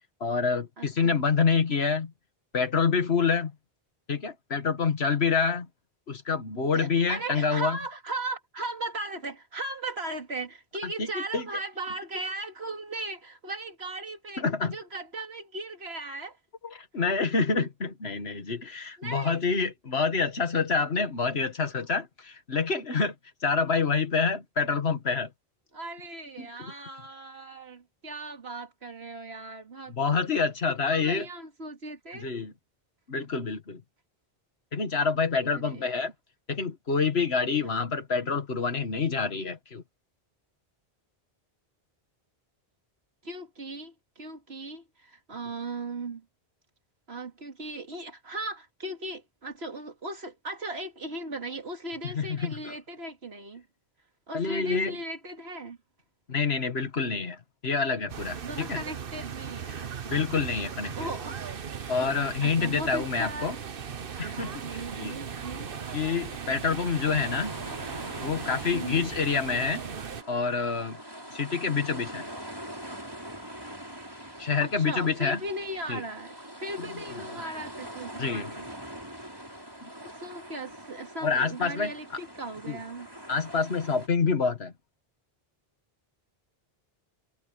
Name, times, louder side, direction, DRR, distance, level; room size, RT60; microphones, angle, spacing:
voice 1, 0.2-2.1 2.5-3.5 4.1-5.7 6.1-7.8 10.8-11.5 14.4-14.7 16.6-23.1 23.4-25.3 26.4-26.7 29.9-31.3 32.1-32.5 33.1-33.8 34.7-36.1 36.5-39.8 52.0-52.7 54.3-55.0 56.3-58.8 60.1-61.1 61.9-63.6 64.2-65.2 65.9-67.5 68.2-69.9 70.3-71.0 71.3-72.2 74.4-75.4 75.9-76.0 78.2-78.5 79.8-79.9 81.2-81.9 82.7-82.8 83.3-84.7, left 5 dB, 85° left, 2.0 m, -27 dB
voice 2, 0.8-1.2 6.7-14.4 14.7-16.4 19.0-19.4 25.7-29.9 30.9-32.3 35.5-35.9 37.6-37.8 43.2-46.2 47.1-53.6 54.3-55.8 58.4-60.2 60.9-61.4 62.4-63.6 64.1-65.7 68.7-69.1 74.6-78.7 80.2-83.1, right 2 dB, 85° right, 2.7 m, -37 dB
sound 1, 58.1-70.2, right 7 dB, 60° right, 1.2 m, -38 dB
sound 2, 64.3-84.1, equal, 20° right, 6.1 m, -43 dB
omnidirectional pair, 1.0 m